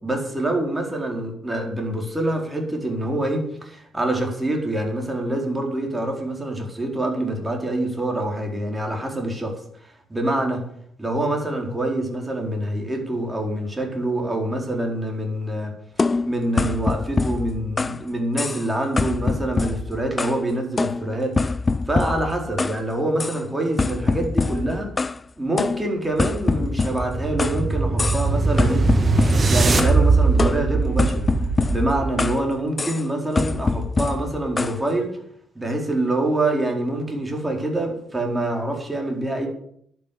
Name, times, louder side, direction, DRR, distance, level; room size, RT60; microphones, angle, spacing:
voice 1, 0.0-9.6 10.1-10.6 11.0-15.7 16.2-21.4 21.9-24.9 25.4-28.9 29.5-31.3 31.7-35.1 35.5-39.5, right 1 dB, 15° right, 1 dB, 4.5 m, -25 dB
sound 1, 16.0-18.0 18.4-18.7 19.0-20.4 20.8-22.8 23.2-23.4 23.8-25.2 25.6-27.6 28.0-28.3 28.6-30.0 30.4-32.4 32.8-33.0 33.4-34.8, left 3 dB, 30° left, 0.5 m, -25 dB
sound 2, 26.1-32.5, right 3 dB, 35° right, 1.6 m, -21 dB
11.5 x 9.4 x 8.6 m, 0.68 s
cardioid pair, 90°, 0 cm